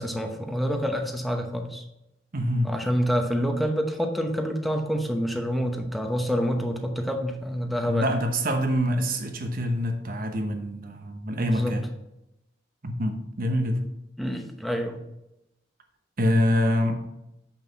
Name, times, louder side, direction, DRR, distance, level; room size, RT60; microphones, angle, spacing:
voice 1, 0.0-1.8 2.6-8.2 11.4-11.7 14.2-15.0, equal, ahead, 3 dB, 0.8 m, -27 dB
voice 2, 2.3-2.7 7.8-11.8 12.8-13.8 16.2-17.0, equal, 50° right, 5 dB, 1.0 m, -25 dB
7.7 x 5.8 x 4.0 m, 0.88 s
head